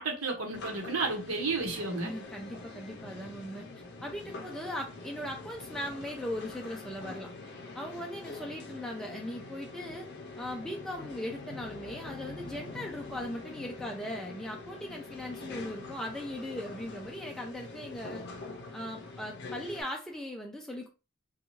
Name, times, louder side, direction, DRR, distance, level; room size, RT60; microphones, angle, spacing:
voice 1, 0.0-2.1, right 3 dB, 80° right, 0.9 m, -32 dB
sound 1, 0.5-19.8, left 3 dB, 55° left, 0.6 m, -44 dB
voice 2, 2.0-3.7 4.0-7.3 7.7-10.1 10.4-18.2 18.7-20.9, left 1 dB, ahead, 0.4 m, -39 dB
2.6 x 2.3 x 3.0 m
head